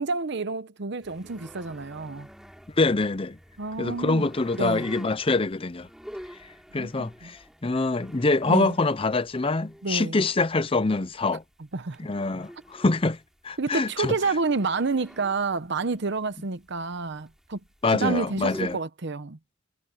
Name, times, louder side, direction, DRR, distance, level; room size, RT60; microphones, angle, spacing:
voice 1, 0.0-2.3 3.6-4.3 4.6-4.9 6.7-7.3 8.5-8.7 9.8-10.2 11.7-12.0 13.6-17.6 17.9-19.4, right 4 dB, 60° right, 0.9 m, -29 dB
sound 1, 1.0-18.8, equal, ahead, 5.2 m, -47 dB
voice 2, 2.8-3.4 3.8-5.9 6.7-11.4 12.0-13.2 13.4-14.1 17.8-18.8, left 3 dB, 25° left, 0.6 m, -25 dB
head